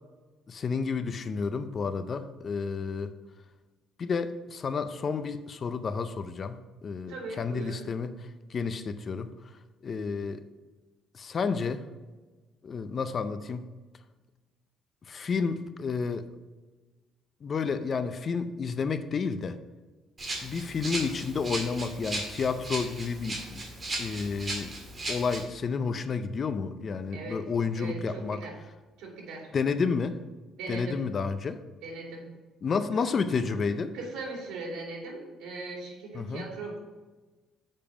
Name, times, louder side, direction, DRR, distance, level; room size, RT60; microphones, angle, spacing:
voice 1, 0.5-3.1 4.0-8.1 8.5-9.3 9.8-10.4 11.1-11.8 12.6-13.6 15.1-16.3 17.4-19.6 20.4-23.6 24.0-24.7 25.1-28.4 29.5-30.2 30.7-31.6 32.6-33.9 36.1-36.4, left 5 dB, 35° left, 11 dB, 0.5 m, -30 dB
voice 2, 7.1-7.8 27.1-27.4 27.7-28.5 29.0-29.5 30.6-31.0 31.8-32.2 32.9-33.0 33.3-33.6 33.9-36.8, right 3 dB, 85° right, -1 dB, 2.7 m, -39 dB
Rattle (instrument), 20.2-25.4, right 1 dB, 25° right, 1.9 m, -36 dB
6.9 x 5.4 x 5.1 m, 1.3 s
cardioid pair, 135°, 0 cm